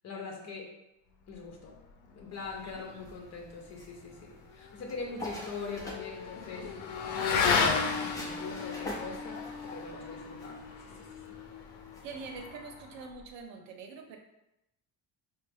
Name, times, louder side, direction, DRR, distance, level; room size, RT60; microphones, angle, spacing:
voice 1, 0.0-0.7 1.3-1.8 2.1-6.7 7.1-11.4, left 4 dB, 35° left, 0 dB, 0.7 m, -42 dB
sound 1, 2.3-12.5, left 1 dB, 10° left, 0.3 m, -48 dB
voice 2, 2.6-3.0 12.0-14.2, right 4 dB, 80° right, 3 dB, 0.7 m, -45 dB
Motorcycle / Accelerating revving vroom, 4.4-13.2, left 5 dB, 80° left, 0.6 m, -34 dB
4.3 x 2.0 x 3.4 m, 0.89 s
cardioid pair, 160°, 44 cm